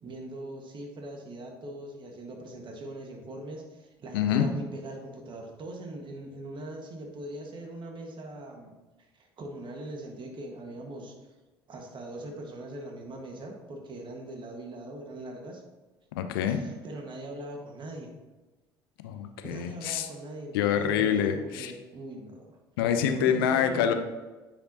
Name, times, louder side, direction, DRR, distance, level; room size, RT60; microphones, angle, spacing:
voice 1, 0.0-8.7 9.1-11.1 11.7-15.6 16.5-18.1 19.4-22.6 23.1-23.9, right 1 dB, 40° right, 2 dB, 1.5 m, -41 dB
voice 2, 4.1-4.5 16.2-16.7 19.0-20.1 20.5-21.7 22.8-23.9, left 8 dB, 75° left, 8 dB, 0.6 m, -26 dB
9.7 x 5.1 x 2.8 m, 1.2 s
hypercardioid pair, 60°, 12 cm